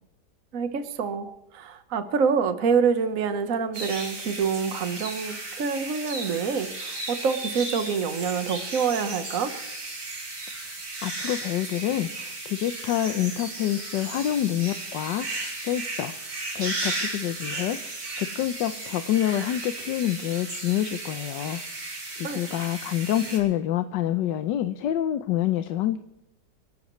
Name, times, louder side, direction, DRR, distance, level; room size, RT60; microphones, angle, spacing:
voice 1, 0.5-9.5 22.2-22.4, right 6 dB, 50° right, 9 dB, 1.5 m, -26 dB
sound 1, 3.7-23.4, right 2 dB, 70° right, 4.0 m, -35 dB
voice 2, 11.0-16.1 16.5-17.8 18.1-21.6 22.1-26.0, left 12 dB, 85° left, 10 dB, 1.4 m, -27 dB
30.0 x 12.0 x 3.2 m, 0.88 s
omnidirectional pair, 1.9 m